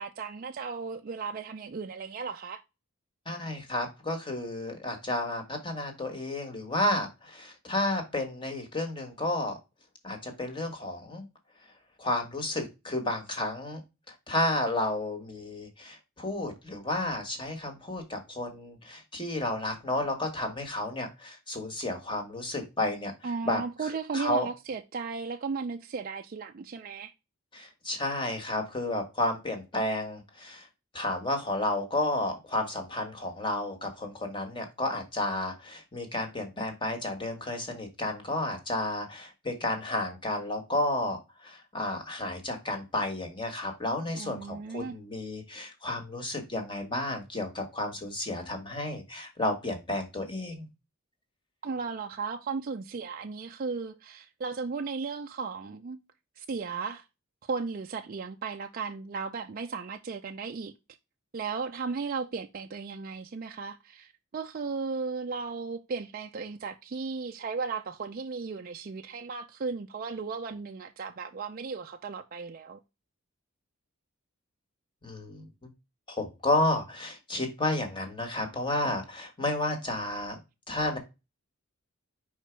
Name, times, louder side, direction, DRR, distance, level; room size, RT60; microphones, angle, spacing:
voice 1, 0.0-2.6 23.2-27.1 44.1-45.0 51.6-56.0 56.4-57.0 57.4-60.7 61.3-72.8, right 4 dB, 40° right, 0.4 m, -35 dB
voice 2, 3.3-9.6 10.0-11.2 12.0-13.8 14.3-23.1 23.4-23.6 24.1-24.5 27.5-30.7 30.9-50.7 75.0-75.4 76.1-80.4 80.7-81.0, left 1 dB, 20° left, 1.4 m, -32 dB
5.0 x 4.4 x 4.5 m
head